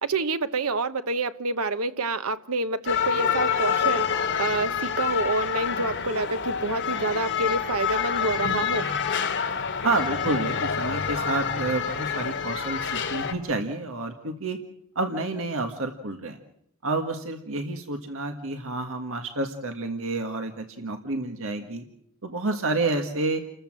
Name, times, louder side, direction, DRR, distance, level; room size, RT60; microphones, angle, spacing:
voice 1, 0.0-8.9, right 3 dB, 90° right, 12 dB, 1.1 m, -28 dB
sound 1, 2.9-13.3, left 7 dB, 60° left, 2.4 m, -27 dB
voice 2, 9.8-14.6 15.0-16.4 16.8-21.9 22.2-23.4, right 2 dB, 70° right, 5 dB, 1.8 m, -29 dB
30.0 x 14.0 x 7.6 m, 0.74 s
head